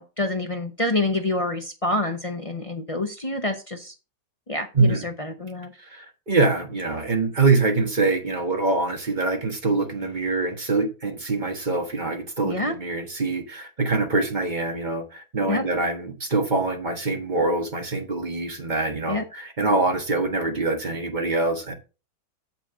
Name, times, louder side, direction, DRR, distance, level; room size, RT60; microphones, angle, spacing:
voice 1, 0.0-3.9 4.5-5.7 12.4-12.7 15.5-15.7 19.1-19.2, left 2 dB, 30° left, 0.6 m, -27 dB
voice 2, 5.8-21.7, right 3 dB, 30° right, 1.4 m, -24 dB
7.4 x 5.9 x 4.9 m
omnidirectional pair, 1.8 m